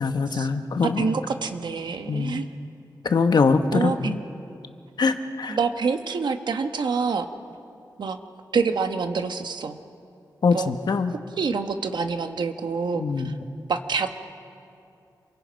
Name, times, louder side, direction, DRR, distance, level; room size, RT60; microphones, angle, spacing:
voice 1, 0.0-1.1 2.1-2.4 3.0-4.2 5.0-5.6 10.4-11.1 12.9-13.4, left 4 dB, 70° left, 8 dB, 1.1 m, -23 dB
voice 2, 0.8-2.5 3.7-4.2 5.5-7.3 8.0-8.2 8.5-9.8 10.5-10.7 11.4-13.3 13.7-14.1, right 5 dB, 90° right, 7 dB, 1.1 m, -26 dB
27.5 x 23.0 x 5.2 m, 2.6 s
wide cardioid pair, 120°, 7 cm